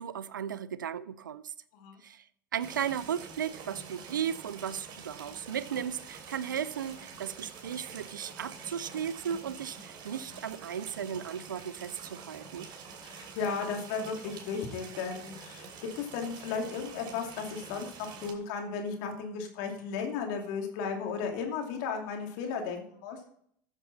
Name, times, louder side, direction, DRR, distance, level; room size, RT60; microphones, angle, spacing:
voice 1, 0.0-1.5 2.0-2.2 2.5-12.7, right 8 dB, 90° right, 0.5 m, -35 dB
sound 1, 2.6-18.3, right 5 dB, 50° right, 3.0 m, -47 dB
voice 2, 13.0-15.7 16.0-23.2, left 5 dB, 65° left, 2.6 m, -35 dB
14.0 x 7.3 x 4.1 m
hypercardioid pair, 85°, 10 cm